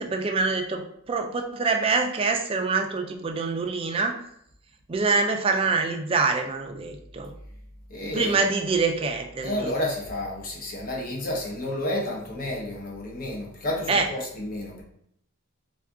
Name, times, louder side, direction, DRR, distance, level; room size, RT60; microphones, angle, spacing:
voice 1, 0.0-4.2 4.9-7.3 8.1-9.7 13.9-14.0, right 4 dB, 25° right, 4 dB, 0.3 m, -25 dB
voice 2, 7.9-8.5 9.4-14.8, left 1 dB, 40° left, -2 dB, 0.8 m, -31 dB
3.6 x 2.4 x 3.5 m, 0.72 s
head